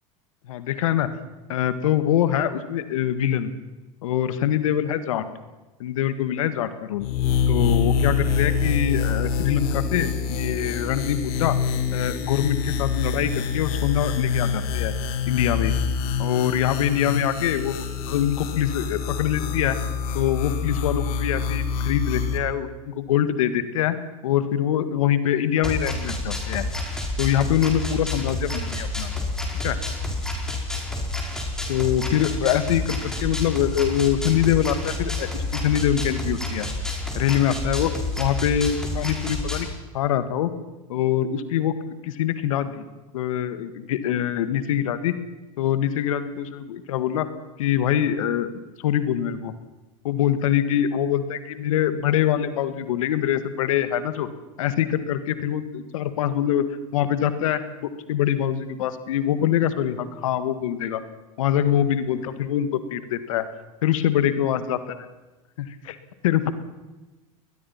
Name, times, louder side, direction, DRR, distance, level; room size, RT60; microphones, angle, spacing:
voice 1, 0.5-1.1 1.5-3.5 4.0-5.2 5.8-7.1 7.5-11.6 11.9-14.9 15.2-15.7 16.2-19.8 20.1-24.0 24.2-26.7 27.2-29.1 29.6-29.8 31.7-36.7 37.1-37.9 38.2-39.7 39.9-40.5 40.9-41.7 42.0-42.9 43.1-45.2 45.6-47.3 47.6-49.5 50.0-54.3 54.6-56.6 56.9-61.0 61.4-63.5 63.8-64.8 65.6-66.0 66.2-66.5, left 10 dB, 75° left, 12 dB, 1.7 m, -24 dB
sound 1, 7.0-22.4, left 6 dB, 60° left, 2.6 m, -26 dB
sound 2, 25.6-39.7, left 2 dB, 5° left, 4.9 m, -29 dB
22.0 x 20.0 x 5.8 m, 1.1 s
hypercardioid pair, 95°, 17 cm